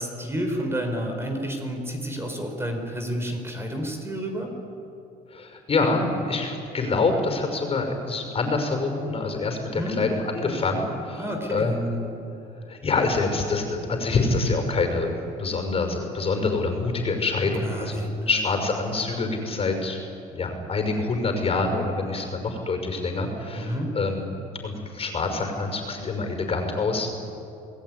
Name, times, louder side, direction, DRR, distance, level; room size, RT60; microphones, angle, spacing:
voice 1, 0.0-4.5 9.8-10.0 11.2-11.7 17.5-18.4 23.6-23.9, equal, 15° right, 3 dB, 4.6 m, -30 dB
voice 2, 5.3-12.1 12.7-15.1 15.4-20.0 20.3-24.3 24.6-27.1, left 3 dB, 35° left, 5 dB, 5.9 m, -26 dB
29.5 x 20.0 x 9.7 m, 2.8 s
cardioid pair, 115°, 17 cm